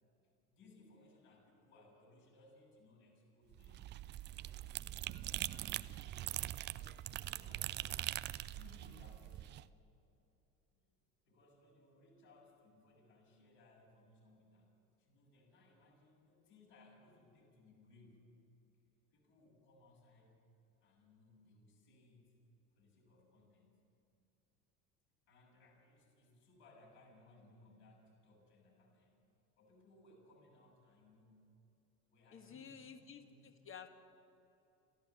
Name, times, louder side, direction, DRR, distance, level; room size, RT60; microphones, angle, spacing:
voice 1, 0.5-3.9 4.3-9.6 11.3-18.3 19.1-20.4 20.8-22.3 22.8-23.8 25.3-29.2 29.6-31.4 32.1-33.5, left 2 dB, 55° left, -2 dB, 7.4 m, -65 dB
sound 1, 3.5-9.6, right 14 dB, 25° right, 0.4 m, -43 dB
voice 2, 32.3-33.2 33.7-33.9, left 7 dB, 25° left, 8 dB, 1.8 m, -51 dB
29.0 x 13.5 x 8.2 m, 2.9 s
figure-of-eight pair, 65°, 48 cm